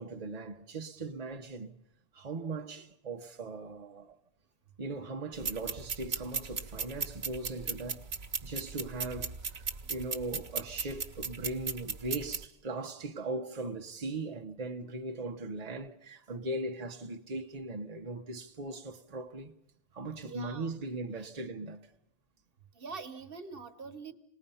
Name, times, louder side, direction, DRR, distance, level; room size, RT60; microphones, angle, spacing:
voice 1, 0.0-1.7 2.1-4.2 4.8-8.1 8.4-19.5 19.9-21.9, right 2 dB, 40° right, 1.0 m, -39 dB
sound 1, 5.3-12.4, right 5 dB, 80° right, 1.4 m, -37 dB
voice 2, 20.2-20.7 22.8-24.1, right 5 dB, 60° right, 1.4 m, -44 dB
28.0 x 19.5 x 5.6 m
omnidirectional pair, 1.1 m